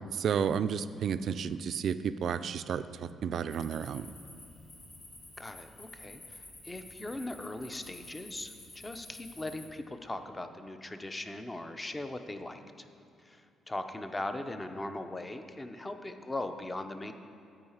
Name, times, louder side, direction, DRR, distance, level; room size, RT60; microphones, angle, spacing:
voice 1, 0.0-4.1, right 7 dB, 65° right, 12 dB, 0.3 m, -32 dB
sound 1, 3.5-9.7, left 2 dB, 55° left, 2.1 m, -51 dB
voice 2, 5.4-12.9 13.2-17.1, left 2 dB, 20° left, 8 dB, 0.6 m, -39 dB
9.6 x 4.8 x 7.2 m, 2.5 s
cardioid pair, 90°, 0 cm